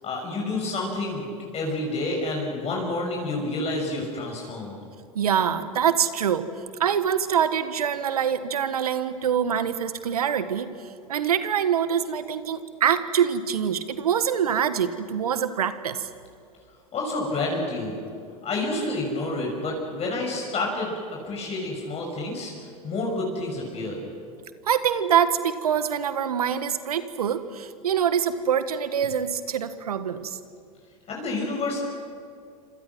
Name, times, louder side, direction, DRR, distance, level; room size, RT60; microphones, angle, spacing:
voice 1, 0.0-4.8 16.9-18.0 18.4-24.1 31.1-31.8, left 2 dB, 35° left, -1 dB, 6.5 m, -29 dB
voice 2, 5.1-6.5 6.8-10.7 11.1-16.1 24.6-30.4, right 8 dB, 80° right, 12 dB, 1.5 m, -25 dB
27.0 x 26.5 x 6.2 m, 2.4 s
hypercardioid pair, 90°, 19 cm